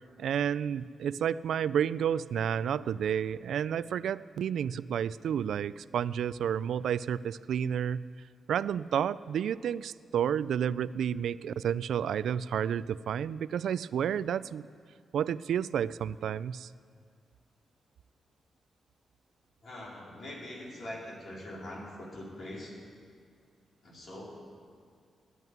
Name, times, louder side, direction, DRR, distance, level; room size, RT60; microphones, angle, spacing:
voice 1, 0.2-8.0 8.5-14.7 15.1-16.7, right 8 dB, 85° right, 17 dB, 0.3 m, -31 dB
voice 2, 19.6-22.7 23.8-24.4, left 1 dB, 50° left, -3 dB, 3.6 m, -43 dB
14.0 x 11.0 x 9.4 m, 2.2 s
wide cardioid pair, 150°, 0 cm